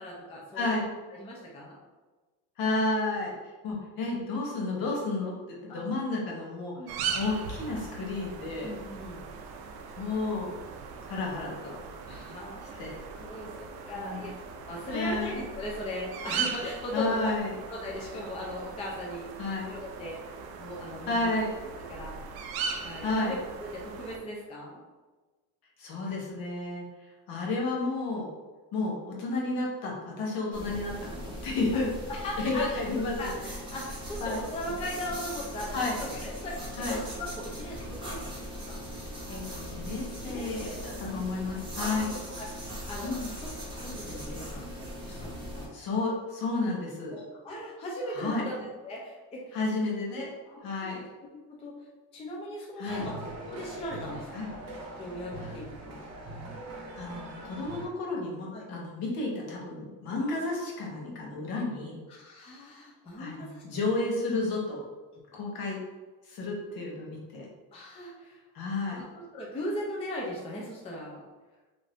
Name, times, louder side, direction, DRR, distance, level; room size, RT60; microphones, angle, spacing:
voice 1, 0.0-1.8 4.1-4.2 5.7-5.8 6.8-7.1 8.6-9.3 12.0-12.8 13.1-14.3 14.7-17.3 17.7-20.2 20.6-21.3 21.9-22.3 22.8-24.8 31.7-31.8 32.1-32.8 33.2-38.8 40.3-40.8 41.9-42.2 42.7-43.1 43.4-45.7 47.1-49.6 50.5-51.1 51.5-51.7 52.1-53.2 53.5-54.5 54.9-56.1 58.5-58.6 62.1-63.6 67.7-68.4 69.0-71.2, left 1 dB, 15° left, -3 dB, 0.3 m, -39 dB
voice 2, 0.5-0.9 2.6-3.3 3.6-6.7 7.1-8.7 10.0-10.5 11.1-11.7 12.8-12.9 14.0-14.3 14.9-15.4 16.9-17.5 19.4-19.7 21.1-21.5 23.0-23.3 25.8-26.8 27.3-28.3 28.7-31.9 32.4-33.3 34.2-34.4 35.7-35.9 36.8-37.0 39.3-42.1 43.0-43.3 45.7-47.2 48.1-48.4 49.5-50.3 50.6-51.0 52.8-53.1 54.3-54.5 55.4-55.5 57.0-62.0 63.2-64.8 65.3-65.8 66.3-67.5 68.5-69.0, left 2 dB, 70° left, -2 dB, 0.9 m, -31 dB
sound 1, 6.9-24.2, right 6 dB, 85° right, 0.5 m, -39 dB
sound 2, 30.5-45.7, equal, 15° right, 0.8 m, -39 dB
sound 3, 52.9-57.9, right 1 dB, 45° right, 0.6 m, -42 dB
2.6 x 2.5 x 3.3 m, 1.2 s
cardioid pair, 170°, 37 cm